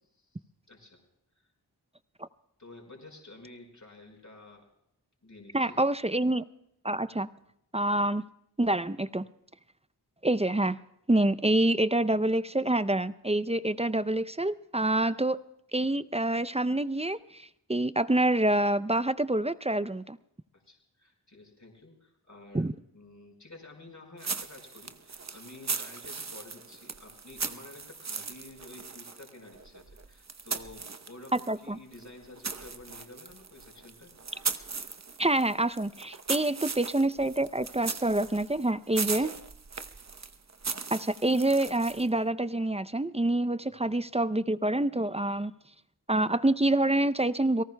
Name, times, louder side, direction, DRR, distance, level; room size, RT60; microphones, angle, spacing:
voice 1, 0.0-1.0 1.3-1.5 2.6-4.7 5.2-6.1 20.5-34.1 39.1-39.3 43.6-44.0, left 2 dB, 45° left, 1 dB, 4.9 m, -51 dB
voice 2, 5.5-6.4 6.8-7.3 7.7-8.2 8.6-9.2 10.2-10.8 11.1-15.4 15.7-20.2 22.5-22.7 31.5-31.8 35.2-39.3 40.9-45.5 46.1-47.6, right 1 dB, 15° right, 15 dB, 0.5 m, -27 dB
sound 1, 24.2-31.6 31.9-42.2, right 4 dB, 40° right, 0.9 m, -38 dB
29.0 x 18.5 x 2.2 m, 0.78 s
wide cardioid pair, 45°, 41 cm